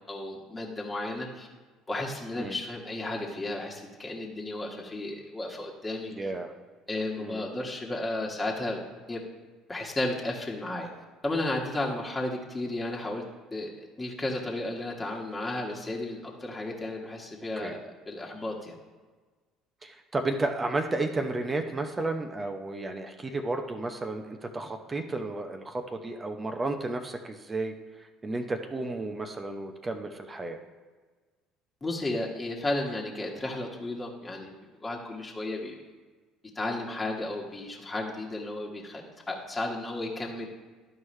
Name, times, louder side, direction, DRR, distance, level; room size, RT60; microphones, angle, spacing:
voice 1, 0.1-1.5 1.9-6.1 6.9-8.8 9.1-9.2 9.7-10.9 11.2-13.2 13.5-13.7 14.0-17.8 18.1-18.7 31.8-34.5 34.8-35.7 36.5-40.5, left 2 dB, 20° left, -2 dB, 1.6 m, -33 dB
voice 2, 6.1-6.5 7.2-7.4 17.6-17.8 19.8-27.7 28.2-30.6, right 2 dB, 25° right, 5 dB, 0.8 m, -32 dB
12.5 x 4.7 x 3.2 m, 1.4 s
hypercardioid pair, 60°, 0 cm